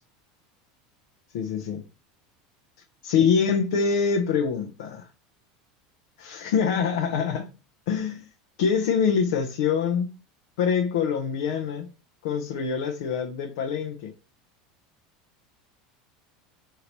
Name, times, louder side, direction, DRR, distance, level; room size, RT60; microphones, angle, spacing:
voice 1, 1.3-1.8 3.0-5.1 6.2-7.5 7.9-8.3 8.6-10.2 10.6-11.9 12.2-14.1, left 6 dB, 80° left, 0.7 m, -25 dB
5.2 x 2.8 x 3.0 m
supercardioid pair, 125°, 3 cm